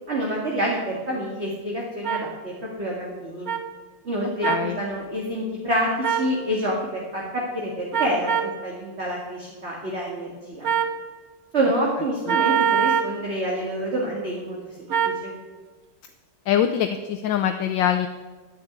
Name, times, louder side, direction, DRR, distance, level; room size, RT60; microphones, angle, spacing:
voice 1, 0.1-2.5 2.8-3.5 4.0-10.7 11.5-15.3, right 1 dB, 30° right, -3 dB, 2.1 m, -27 dB
sound 1, 2.0-2.2 3.5-3.6 4.4-4.7 6.0-6.3 7.9-8.5 10.6-11.0 12.3-13.1 14.9-15.2, right 8 dB, 50° right, 1.2 m, -23 dB
voice 2, 4.4-4.8 12.3-12.4 16.5-18.1, left 10 dB, 70° left, 7 dB, 1.3 m, -23 dB
10.5 x 8.6 x 9.2 m, 1.3 s
omnidirectional pair, 2.3 m